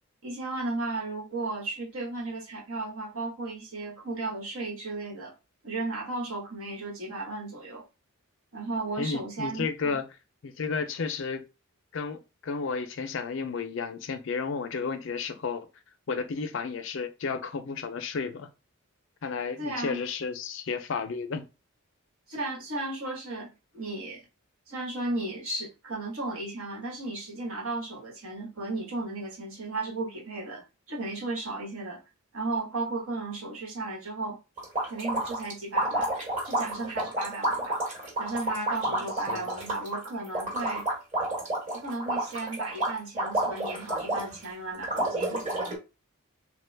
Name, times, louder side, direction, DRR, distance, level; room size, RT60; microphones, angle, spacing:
voice 1, 0.2-5.3 5.6-7.8 8.5-10.0 19.6-20.0 22.3-24.2 24.7-32.0 32.3-34.4 34.9-36.1 36.4-37.8 38.2-40.9 41.7-45.4, right 2 dB, 75° right, 1.3 m, -34 dB
voice 2, 9.0-10.0 10.4-11.4 11.9-15.7 16.1-18.5 19.2-21.5 38.9-39.5, left 5 dB, 55° left, 0.4 m, -32 dB
sound 1, 34.6-44.4 44.8-45.8, right 1 dB, 35° right, 1.1 m, -30 dB
3.0 x 2.2 x 3.3 m
head